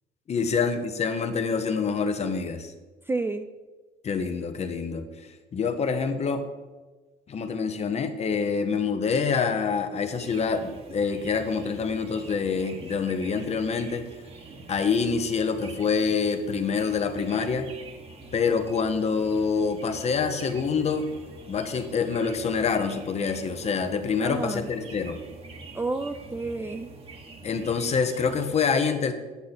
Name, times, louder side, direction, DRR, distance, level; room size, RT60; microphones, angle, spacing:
voice 1, 0.3-2.7 4.0-5.0 5.5-6.5 7.3-14.1 14.7-17.7 18.3-21.1 21.5-25.2 27.4-29.1, left 5 dB, 40° left, 8 dB, 0.9 m, -26 dB
voice 2, 3.1-3.5 24.2-24.7 25.7-26.9, right 3 dB, 15° right, 8 dB, 0.4 m, -30 dB
sound 1, 10.1-28.6, right 3 dB, 35° right, 1.2 m, -45 dB
8.5 x 8.3 x 4.2 m, 1.3 s
cardioid pair, 110°, 17 cm